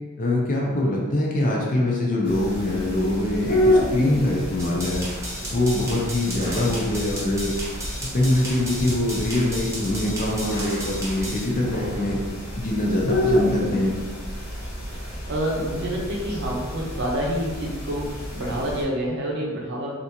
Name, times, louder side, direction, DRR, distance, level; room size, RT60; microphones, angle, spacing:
voice 1, 0.2-5.1 5.5-7.5 8.0-12.2 12.6-14.0, left 1 dB, 35° left, -2 dB, 0.5 m, -23 dB
sound 1, 2.2-18.8, left 1 dB, 80° left, 1.1 m, -29 dB
voice 2, 3.6-3.9 13.2-13.5 14.9-19.9, equal, 50° right, -2 dB, 0.6 m, -28 dB
sound 2, 4.6-11.4, right 1 dB, 15° right, 0.6 m, -34 dB
sound 3, 6.3-6.8 8.0-9.2 10.4-11.0 11.5-12.3, equal, 65° left, 0.8 m, -37 dB
3.3 x 2.5 x 2.8 m, 1.4 s
head